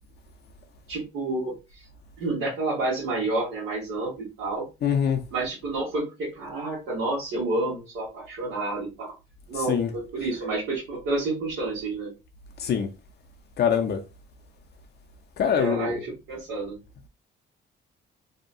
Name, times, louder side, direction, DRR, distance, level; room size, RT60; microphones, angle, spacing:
voice 1, 0.9-1.8 2.2-4.7 5.3-9.1 9.5-12.1 15.5-16.8, right 2 dB, 85° right, 1.2 m, -29 dB
voice 2, 4.8-5.2 9.7-9.9 12.6-12.9 13.6-14.0 15.4-15.9, left 8 dB, 55° left, 0.5 m, -23 dB
2.8 x 2.2 x 2.5 m
cardioid pair, 90°, 20 cm